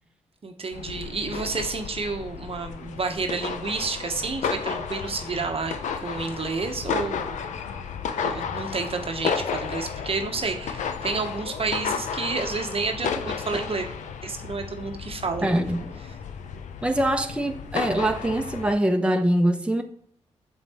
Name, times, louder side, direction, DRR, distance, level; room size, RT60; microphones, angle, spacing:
voice 1, 0.4-7.6 8.2-13.9 14.2-15.7, right 4 dB, 50° right, 1.0 m, -30 dB
sound 1, 0.7-18.7, left 6 dB, 85° left, 0.6 m, -33 dB
voice 2, 15.4-15.9 16.8-19.8, right 1 dB, 10° right, 0.9 m, -23 dB
7.2 x 5.3 x 4.2 m
cardioid pair, 50°, 12 cm